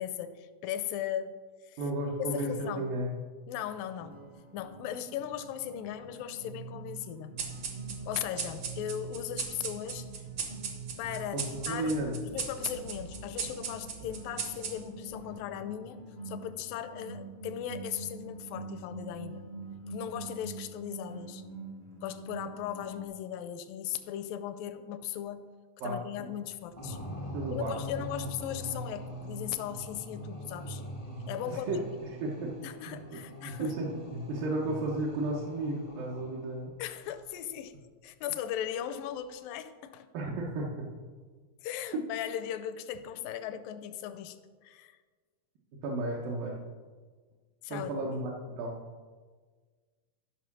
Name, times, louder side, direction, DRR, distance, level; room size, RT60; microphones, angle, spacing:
voice 1, 0.0-1.4 1.6-1.8 2.2-2.8 3.5-4.2 4.5-7.4 8.0-10.1 11.0-12.0 12.3-19.5 19.9-21.4 22.0-25.5 25.8-27.0 27.5-30.8 31.3-31.7 32.6-33.7 36.8-37.8 38.0-40.1 41.6-44.4 44.6-45.0 47.6-48.1, left 10 dB, 80° left, 11 dB, 2.3 m, -38 dB
voice 2, 1.8-3.1 11.3-12.2 25.8-26.3 27.3-27.8 28.2-28.3 31.5-36.7 40.1-40.9 41.9-42.0 45.8-46.6 47.7-48.8, right 2 dB, 75° right, -4 dB, 2.8 m, -34 dB
sound 1, 3.7-23.0, right 4 dB, 40° right, 0.8 m, -45 dB
sound 2, 7.4-15.1, right 5 dB, 55° right, 1.6 m, -39 dB
sound 3, 26.8-36.6, equal, 25° left, 0.7 m, -42 dB
13.0 x 5.4 x 6.0 m, 1.5 s
omnidirectional pair, 4.1 m